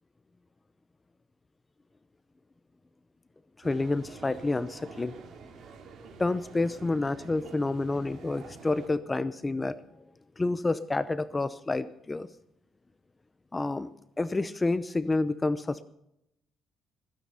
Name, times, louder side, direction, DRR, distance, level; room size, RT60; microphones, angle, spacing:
voice 1, 3.6-5.1 6.2-9.8 10.4-12.3 13.5-13.9 14.2-15.8, left 2 dB, 20° left, 15 dB, 0.7 m, -29 dB
sound 1, 3.6-8.9, right 5 dB, 60° right, 2.8 m, -48 dB
20.5 x 9.4 x 5.7 m, 0.79 s
cardioid pair, 85°, 0 cm